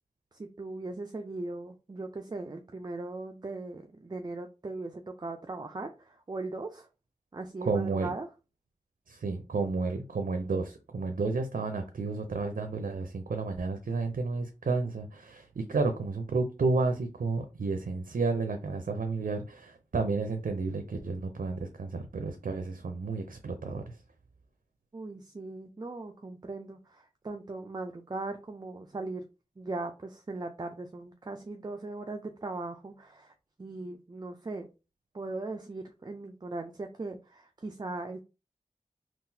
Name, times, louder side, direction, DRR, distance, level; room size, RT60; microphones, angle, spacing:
voice 1, 0.3-6.9 7.3-8.3 24.9-29.3 29.6-33.3 33.6-34.7 35.1-38.2, right 2 dB, 30° right, 0.4 m, -39 dB
voice 2, 7.7-8.1 9.1-23.8, right 3 dB, 85° right, 0.5 m, -31 dB
3.8 x 2.4 x 2.7 m
wide cardioid pair, 70°, 14 cm